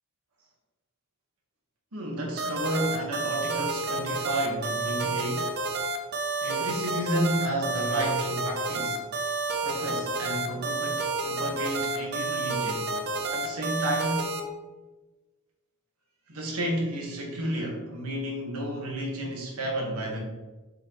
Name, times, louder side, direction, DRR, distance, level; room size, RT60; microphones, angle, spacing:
voice 1, 1.9-5.5 6.4-9.2 9.6-12.9 13.3-14.3 16.3-20.2, right 1 dB, 80° right, 0 dB, 1.6 m, -31 dB
sound 1, 2.4-14.4, right 3 dB, 50° right, 0.8 m, -30 dB
7.3 x 4.1 x 3.2 m, 1.2 s
head